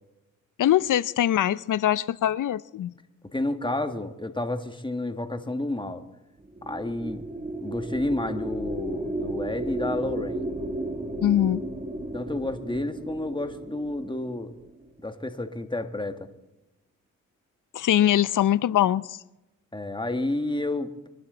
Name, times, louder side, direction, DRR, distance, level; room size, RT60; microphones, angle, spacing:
voice 1, 0.6-2.9 11.2-11.6 17.7-19.2, left 12 dB, 60° left, 0.6 m, -22 dB
voice 2, 3.3-6.0 6.6-7.2 7.6-10.5 12.1-14.5 15.0-16.3 19.7-21.1, left 2 dB, 15° left, 1.8 m, -30 dB
sound 1, 6.4-14.9, right 2 dB, 20° right, 1.4 m, -34 dB
23.5 x 11.5 x 4.0 m
supercardioid pair, 50°, 34 cm